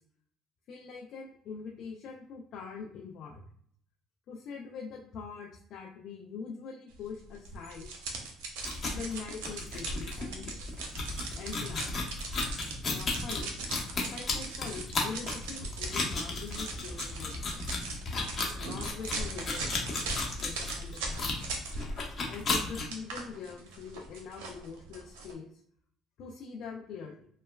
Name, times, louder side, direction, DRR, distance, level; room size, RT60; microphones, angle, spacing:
voice 1, 0.7-3.4 4.3-7.9 8.9-10.5 11.4-11.9 12.8-13.5 14.1-17.8 18.6-21.5 22.3-25.6 26.2-27.3, left 5 dB, 65° left, 0 dB, 0.4 m, -43 dB
sound 1, 7.4-22.0 22.3-25.3, right 3 dB, 85° right, 0.6 m, -40 dB
sound 2, 8.6-22.9, left 3 dB, 45° left, 0.8 m, -34 dB
3.0 x 2.1 x 2.2 m, 0.64 s
supercardioid pair, 70°, 0 cm